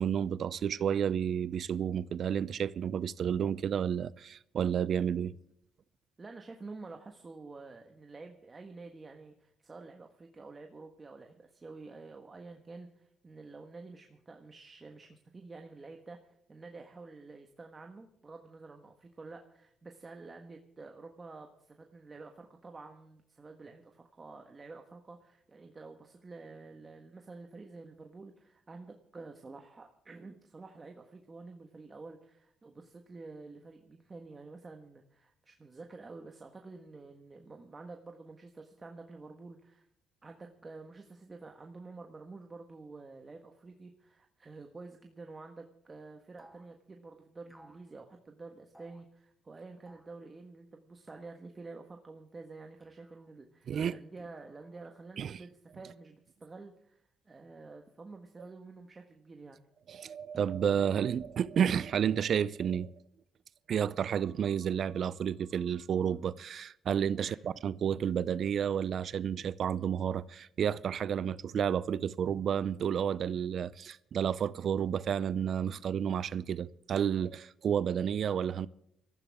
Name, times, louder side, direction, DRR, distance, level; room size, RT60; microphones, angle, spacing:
voice 1, 0.0-5.3 53.7-54.0 55.2-55.4 59.9-62.9 63.7-78.7, right 8 dB, 60° right, 0.5 m, -31 dB
voice 2, 6.2-39.8 40.2-59.6 67.2-67.5 75.7-75.9, right 3 dB, 30° right, 1.4 m, -49 dB
sound 1, 46.4-46.7 47.5-47.9 48.7-49.1 49.9-50.2 51.1-51.4 52.8-53.3 54.2-54.9, right 1 dB, ahead, 2.3 m, -60 dB
21.5 x 14.5 x 3.6 m
cardioid pair, 90°, 0 cm